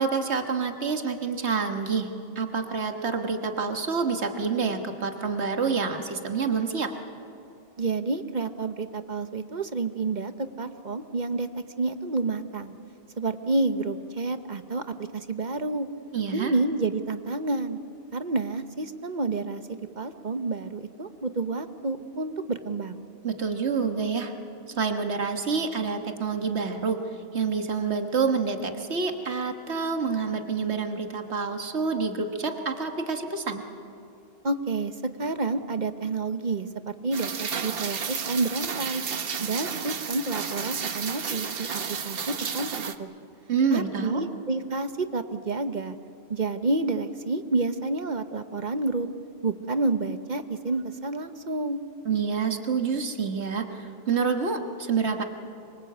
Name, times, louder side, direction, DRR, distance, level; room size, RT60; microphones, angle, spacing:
voice 1, 0.0-2.1 2.4-6.9 16.1-16.5 23.2-24.3 24.8-27.0 27.3-33.6 43.5-44.2 52.1-55.2, right 5 dB, 90° right, 6 dB, 1.8 m, -27 dB
voice 2, 7.8-12.8 13.2-15.9 16.3-17.8 18.1-23.1 34.4-39.0 39.4-43.1 43.7-46.0 46.3-49.1 49.4-51.8, right 3 dB, 45° right, 10 dB, 1.1 m, -29 dB
Rain, 37.1-42.9, right 6 dB, 60° right, 1.2 m, -32 dB
25.5 x 23.5 x 8.1 m, 2.6 s
omnidirectional pair, 1.1 m